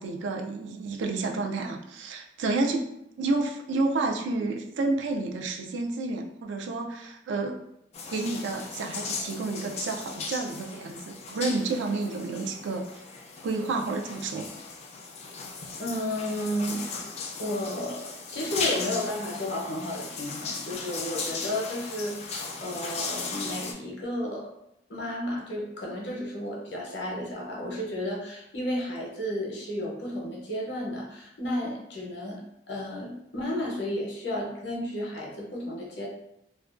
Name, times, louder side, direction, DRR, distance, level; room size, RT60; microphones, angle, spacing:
voice 1, 0.0-2.9 3.2-7.6 8.1-13.0 13.4-14.5, right 3 dB, 85° right, 3 dB, 0.4 m, -30 dB
sound 1, 7.9-23.7, left 4 dB, 35° left, 0.3 m, -37 dB
voice 2, 15.8-16.8 17.4-24.5 24.9-32.4 32.7-36.1, left 1 dB, 70° left, -3 dB, 0.7 m, -33 dB
2.4 x 2.2 x 2.4 m, 0.79 s
head